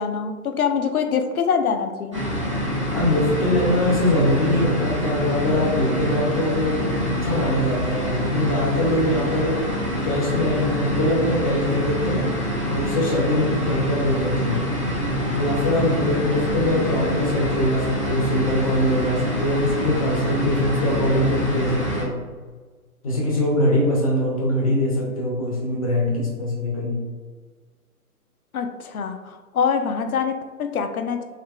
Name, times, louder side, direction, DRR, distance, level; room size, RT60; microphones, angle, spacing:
voice 1, 0.0-2.2 28.5-29.2 29.5-31.2, left 6 dB, 70° left, 7 dB, 0.5 m, -24 dB
sound 1, 2.1-22.0, equal, 20° right, 0.4 m, -26 dB
voice 2, 2.9-9.6 10.0-12.4 12.6-14.6 15.3-22.2 23.0-27.0, left 1 dB, 25° left, -3 dB, 0.6 m, -22 dB
3.5 x 2.8 x 2.3 m, 1.4 s
figure-of-eight pair, 135°, 45 cm